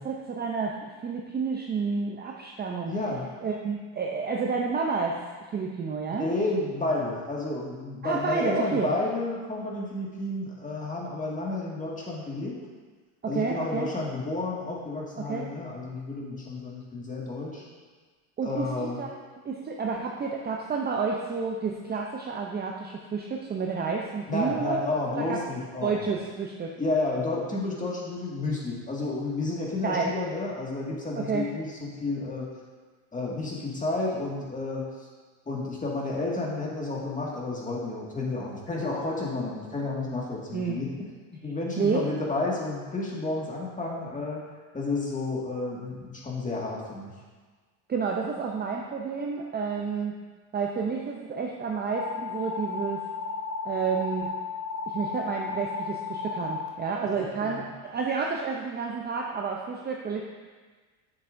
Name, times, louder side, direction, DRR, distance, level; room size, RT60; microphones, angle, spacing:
voice 1, 0.0-2.9 3.4-5.2 5.5-6.3 8.0-8.9 13.2-13.9 15.2-15.5 18.4-19.1 19.4-24.9 25.2-25.4 25.8-26.8 29.8-30.1 31.2-31.5 40.5-40.8 41.8-42.1 47.9-50.1 50.5-53.1 53.6-54.3 54.9-60.2, right 5 dB, 20° right, 0 dB, 0.6 m, -30 dB
voice 2, 2.9-3.3 6.1-12.5 13.3-17.6 18.4-19.0 24.3-25.9 26.8-32.5 33.1-35.1 35.5-40.9 41.4-44.4 44.7-47.1 57.4-57.7, left 2 dB, 15° left, -4 dB, 1.9 m, -31 dB
sound 1, 51.9-56.7, left 4 dB, 40° left, 1.2 m, -34 dB
8.6 x 6.9 x 2.6 m, 1.4 s
supercardioid pair, 100°, 46 cm